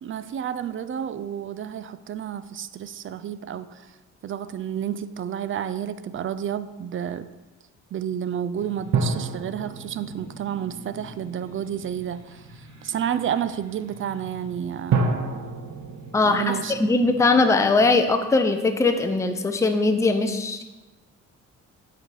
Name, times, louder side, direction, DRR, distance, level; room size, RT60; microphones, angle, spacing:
voice 1, 0.0-4.0 4.2-7.3 7.9-15.1 16.2-16.7, right 9 dB, 45° right, 13 dB, 0.4 m, -30 dB
sound 1, 8.5-17.9, right 2 dB, 80° right, 1.6 m, -44 dB
sound 2, 8.9-11.5 14.9-17.5 17.8-17.9, right 4 dB, 65° right, 0.9 m, -29 dB
voice 2, 16.1-20.6, left 3 dB, 10° left, 6 dB, 0.5 m, -20 dB
7.7 x 4.2 x 4.8 m, 1.1 s
cardioid pair, 90°, 30 cm